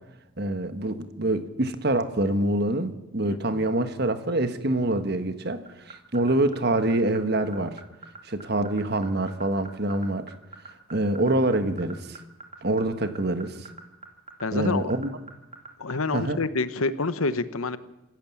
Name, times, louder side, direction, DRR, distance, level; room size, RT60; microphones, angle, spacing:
voice 1, 0.4-7.8 8.2-10.3 10.9-12.2 12.6-13.6 14.5-15.1 16.1-16.4, right 1 dB, 50° right, 1.4 m, -25 dB
voice 2, 3.3-3.7 14.4-14.9 15.8-17.8, left 3 dB, 90° left, 1.1 m, -28 dB
sound 1, 5.7-16.2, right 3 dB, 30° right, 2.7 m, -42 dB
26.0 x 14.0 x 7.2 m
head